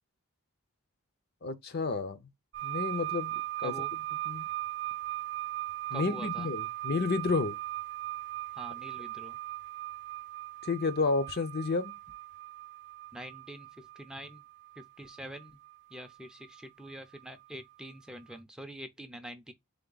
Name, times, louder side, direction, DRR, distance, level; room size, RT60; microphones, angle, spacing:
voice 1, 1.4-2.2 2.6-3.7 4.3-4.4 5.9-7.6 10.6-11.9, left 4 dB, 50° left, 0.6 m, -31 dB
sound 1, 2.5-17.5 18.3-18.4, right 16 dB, 55° right, 0.5 m, -39 dB
voice 2, 3.6-3.9 5.9-6.5 8.5-9.4 13.1-14.4 14.8-15.6 15.9-19.5, equal, 5° right, 0.5 m, -45 dB
4.0 x 3.5 x 3.8 m
head